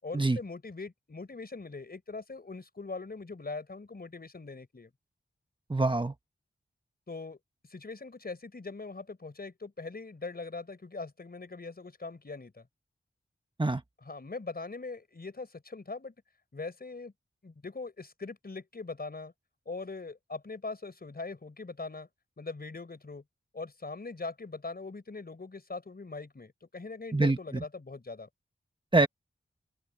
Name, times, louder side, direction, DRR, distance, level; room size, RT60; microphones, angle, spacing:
voice 1, 0.0-4.9 7.1-7.4 7.7-12.7 14.0-16.1 16.5-17.1 17.4-19.3 19.7-22.1 22.4-23.2 23.5-28.3, left 3 dB, 50° left, 5.2 m, -41 dB
voice 2, 5.7-6.1 13.6-13.8 27.1-27.6 28.9-29.1, right 2 dB, 25° right, 1.1 m, -25 dB
open air
wide cardioid pair, 60°, 21 cm